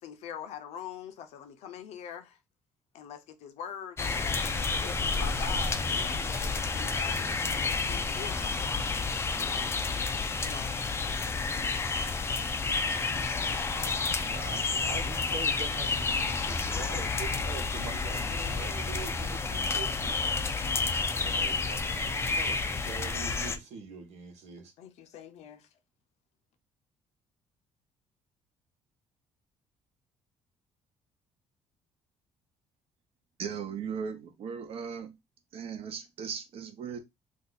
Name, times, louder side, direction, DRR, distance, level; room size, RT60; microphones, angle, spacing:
voice 1, 0.0-2.4 2.9-8.7 9.4-9.8 10.4-10.8 24.8-25.7, left 8 dB, 70° left, 0.6 m, -43 dB
sound 1, 4.0-23.6, left 4 dB, 20° left, 0.4 m, -30 dB
voice 2, 14.2-20.3 21.1-24.7, right 5 dB, 75° right, 1.2 m, -43 dB
voice 3, 33.4-35.1 35.5-37.0, right 6 dB, 55° right, 0.8 m, -37 dB
2.6 x 2.4 x 3.9 m
cardioid pair, 120°, 12 cm